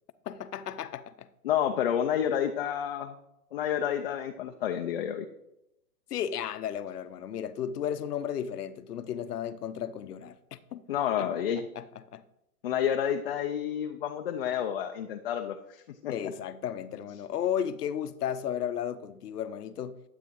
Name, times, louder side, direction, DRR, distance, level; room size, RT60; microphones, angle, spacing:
voice 1, 0.3-1.3 6.1-10.8 11.2-11.3 11.7-11.9 12.1-12.2 16.1-20.0, left 9 dB, 85° left, 0.8 m, -34 dB
voice 2, 1.4-3.2 3.5-5.3 10.9-11.6 12.6-16.1, left 9 dB, 40° left, 0.5 m, -29 dB
12.0 x 8.2 x 3.1 m
hypercardioid pair, 155°, 45 cm